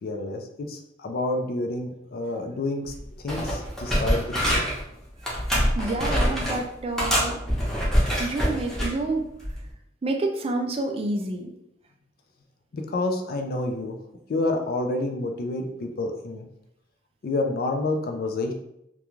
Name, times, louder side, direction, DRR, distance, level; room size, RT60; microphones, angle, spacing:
voice 1, 0.0-2.9 3.2-4.7 12.7-14.0 14.3-16.5 17.2-18.5, left 2 dB, 55° left, 4 dB, 0.4 m, -29 dB
sound 1, 2.9-3.0 3.3-4.8 5.2-6.6 7.0-8.9 9.4-9.6, equal, 5° left, 0.7 m, -25 dB
voice 2, 5.3-7.4 8.2-9.3 10.0-11.5, right 2 dB, 30° right, 4 dB, 0.4 m, -29 dB
2.4 x 2.2 x 3.0 m, 0.80 s
head